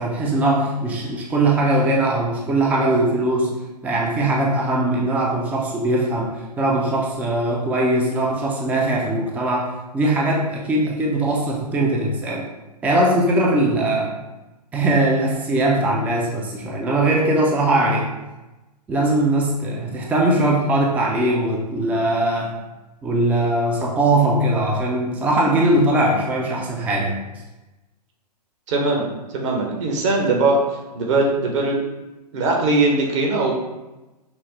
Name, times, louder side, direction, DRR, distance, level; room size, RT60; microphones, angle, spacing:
voice 1, 0.0-3.5 3.8-12.5 12.8-14.1 14.7-18.1 18.9-22.6 23.0-27.2, right 1 dB, 5° right, -2 dB, 0.4 m, -20 dB
voice 2, 28.7-29.1 29.3-30.6 30.9-31.8 32.3-33.5, right 2 dB, 45° right, 0 dB, 0.9 m, -20 dB
5.8 x 2.0 x 3.1 m, 1.1 s
figure-of-eight pair, 120°, 21 cm